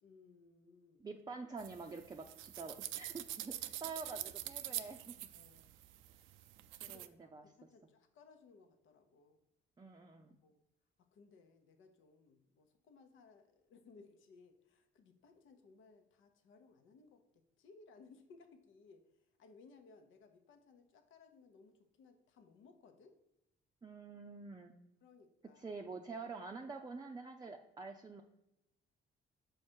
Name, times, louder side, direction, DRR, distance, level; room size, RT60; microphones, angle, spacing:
voice 1, 0.0-1.0 5.3-5.7 6.9-9.4 10.4-10.6 11.0-19.0 19.4-23.2 25.0-25.8, left 4 dB, 80° left, 6 dB, 0.9 m, -62 dB
voice 2, 1.0-5.2 6.8-7.4 9.8-10.4 23.8-24.7 25.6-28.2, right 4 dB, 20° right, 2 dB, 0.5 m, -47 dB
sound 1, 1.6-7.1, right 13 dB, 90° right, 0.4 m, -46 dB
6.5 x 4.8 x 4.4 m, 0.91 s
cardioid pair, 90°, 20 cm